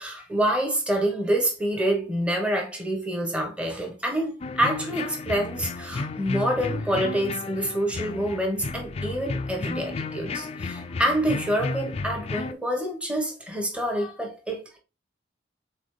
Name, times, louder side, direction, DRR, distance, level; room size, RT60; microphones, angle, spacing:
voice 1, 0.0-14.8, right 1 dB, 5° right, 1.0 m, -27 dB
sound 1, 4.4-12.5, left 3 dB, 35° left, 0.3 m, -33 dB
4.1 x 4.0 x 3.2 m
head